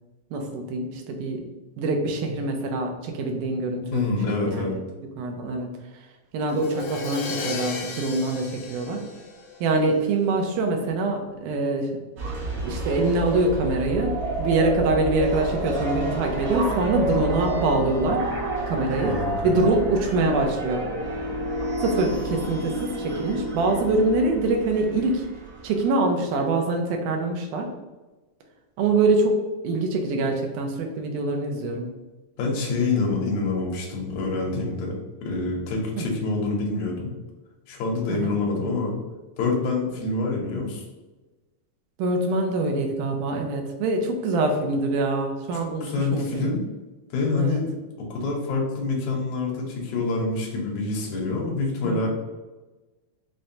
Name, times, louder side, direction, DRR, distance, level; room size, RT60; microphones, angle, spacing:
voice 1, 0.3-1.4 1.8-4.0 4.4-4.8 5.2-5.7 6.3-9.0 9.6-11.9 12.6-14.1 14.4-18.2 18.7-19.2 19.4-20.8 21.8-25.3 25.6-27.7 28.8-31.9 36.0-36.1 38.1-38.4 42.0-46.5 47.4-47.6 51.8-52.1, right 2 dB, 85° right, 3 dB, 2.2 m, -24 dB
voice 2, 3.9-4.8 19.1-19.6 32.4-35.0 35.2-37.1 37.7-39.0 39.4-40.8 45.5-46.6 47.1-47.7 48.1-52.1, left 3 dB, 70° left, -1 dB, 2.1 m, -26 dB
Crash cymbal, 6.5-10.3, left 3 dB, 90° left, 2.1 m, -35 dB
sound 1, 12.2-25.9, right 2 dB, 65° right, 1.7 m, -30 dB
5.9 x 2.1 x 2.7 m, 1.2 s
omnidirectional pair, 3.6 m